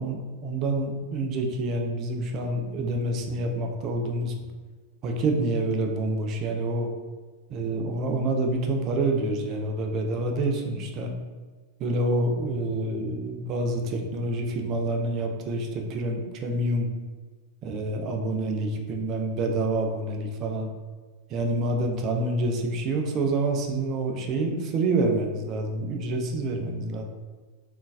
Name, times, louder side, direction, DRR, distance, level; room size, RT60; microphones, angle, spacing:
voice 1, 0.0-4.3 5.0-6.9 7.5-11.1 11.8-16.9 17.6-20.7 21.3-27.0, right 2 dB, 35° right, 3 dB, 0.5 m, -27 dB
3.7 x 2.6 x 2.4 m, 1.4 s
figure-of-eight pair, 90°, 0 cm